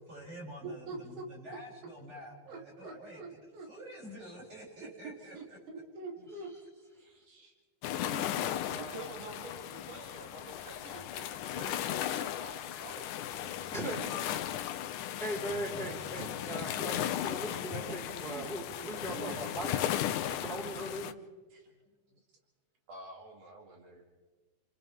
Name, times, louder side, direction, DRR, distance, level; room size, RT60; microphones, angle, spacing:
voice 1, 0.1-3.4 3.7-5.6 8.7-9.1 15.0-15.9 16.2-16.6 21.8-22.0, right 1 dB, 40° right, -5 dB, 8.8 m, -48 dB
voice 2, 0.6-1.3 2.5-3.7 4.2-4.3 5.0-6.5 6.9-7.5 8.0-11.8 12.1-13.2 18.3-18.5 19.0-19.7 21.5-21.8 22.9-24.0, right 3 dB, 85° right, 0 dB, 3.8 m, -47 dB
sound 1, 7.8-21.1, left 11 dB, 85° left, 2.2 m, -36 dB
voice 3, 13.7-14.1 15.2-19.7 20.3-21.1, right 1 dB, ahead, -3 dB, 4.5 m, -39 dB
29.0 x 28.0 x 3.6 m, 1.4 s
omnidirectional pair, 3.5 m